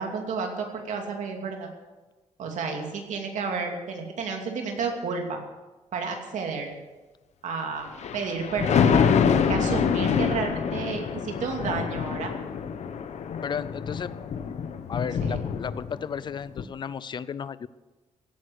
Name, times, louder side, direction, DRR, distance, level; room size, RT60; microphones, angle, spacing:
voice 1, 0.0-1.7 2.4-5.4 5.9-6.8 7.4-7.9 8.1-12.3 15.2-15.4, right 5 dB, 85° right, 3 dB, 2.6 m, -31 dB
Thunder, 7.9-16.2 16.6-16.7, left 7 dB, 65° left, 1.0 m, -26 dB
voice 2, 13.4-14.1 14.4-14.5 14.9-17.7, left 7 dB, 40° left, 17 dB, 0.5 m, -34 dB
16.5 x 9.6 x 6.5 m, 1.2 s
wide cardioid pair, 160°, 12 cm